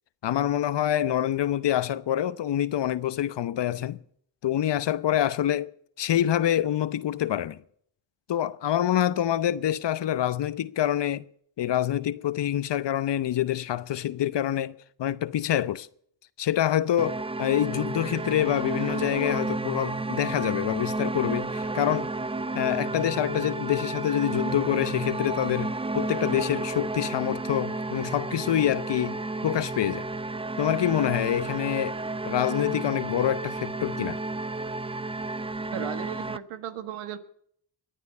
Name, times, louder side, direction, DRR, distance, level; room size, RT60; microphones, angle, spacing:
voice 1, 0.2-4.0 4.4-5.7 6.0-7.6 8.3-11.2 11.6-15.9 16.4-22.1 22.5-30.1 30.6-32.0 32.2-34.2, left 11 dB, 55° left, 0.9 m, -26 dB
sound 1, 17.0-36.4, right 3 dB, 10° right, 0.6 m, -32 dB
voice 2, 35.7-37.2, right 10 dB, 85° right, 1.6 m, -36 dB
23.5 x 9.0 x 5.5 m
supercardioid pair, 55°, 50 cm